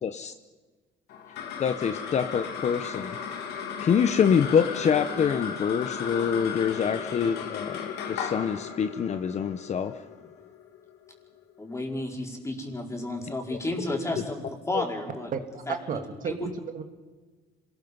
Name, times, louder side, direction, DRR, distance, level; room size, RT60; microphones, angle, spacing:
voice 1, 0.0-0.3 1.6-3.2 3.8-9.9 13.5-13.6 14.7-14.8, left 7 dB, 40° left, 10 dB, 0.8 m, -26 dB
sound 1, 1.1-11.7, left 7 dB, 85° left, 2.7 m, -36 dB
voice 2, 11.6-15.3 15.7-15.8 16.2-16.5, left 1 dB, 15° left, 0 dB, 4.8 m, -32 dB
voice 3, 15.3-16.8, right 6 dB, 55° right, 7 dB, 1.8 m, -33 dB
26.5 x 19.5 x 5.4 m, 1.4 s
cardioid pair, 110°, 17 cm